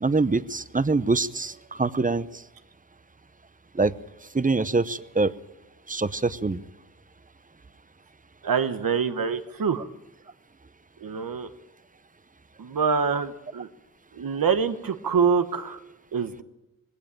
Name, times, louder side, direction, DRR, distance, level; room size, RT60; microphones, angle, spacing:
voice 1, 0.0-2.3 3.7-3.9 4.3-5.3 5.9-6.6, right 3 dB, 25° right, 16 dB, 0.7 m, -24 dB
voice 2, 8.4-9.9 11.0-11.5 12.6-13.7 14.2-15.8 16.1-16.4, right 6 dB, 75° right, 10 dB, 1.2 m, -25 dB
20.5 x 17.0 x 9.0 m, 0.99 s
wide cardioid pair, 80°, 34 cm